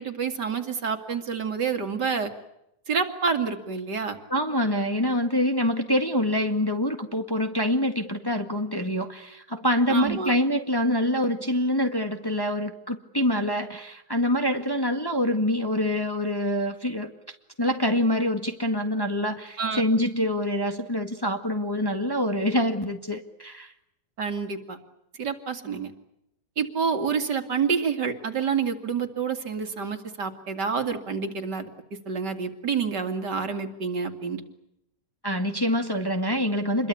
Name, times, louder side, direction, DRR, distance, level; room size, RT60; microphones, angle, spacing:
voice 1, 0.0-2.3 2.9-4.2 9.9-10.3 19.6-19.8 24.2-24.8 25.2-25.9 26.6-31.7 32.1-34.4, right 6 dB, 65° right, 7 dB, 2.9 m, -28 dB
voice 2, 4.3-17.1 17.6-23.7 35.2-36.9, left 1 dB, 15° left, 5 dB, 1.8 m, -25 dB
28.5 x 22.5 x 8.5 m, 0.83 s
omnidirectional pair, 2.0 m